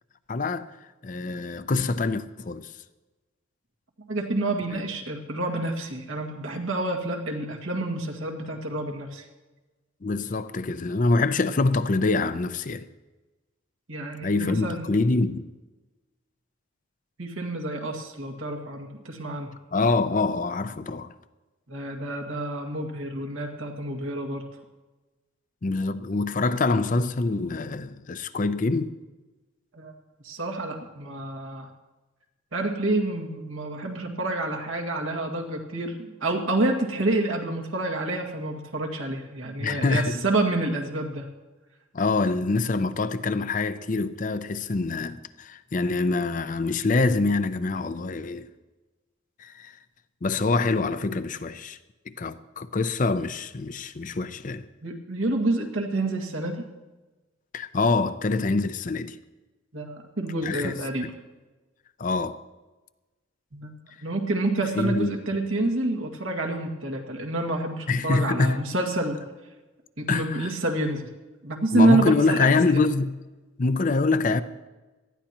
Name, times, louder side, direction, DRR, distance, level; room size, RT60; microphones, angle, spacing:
voice 1, 0.3-0.7 1.0-2.7 4.7-4.8 10.0-12.9 14.2-15.5 19.7-21.1 25.6-28.9 39.6-40.2 41.9-48.5 49.4-49.7 50.2-51.8 52.2-54.7 57.5-59.2 60.4-61.1 62.0-62.4 64.7-65.1 67.9-68.6 70.1-70.5 71.7-73.2 73.6-74.4, left 3 dB, 40° left, 0.5 m, -25 dB
voice 2, 4.1-9.2 13.9-14.9 17.2-19.5 21.7-24.5 29.7-29.9 30.2-31.7 32.5-41.3 54.8-56.6 59.7-61.1 63.5-63.7 64.0-69.2 70.0-71.1 71.4-72.4, right 2 dB, 85° right, 2.0 m, -28 dB
18.5 x 13.0 x 3.0 m
head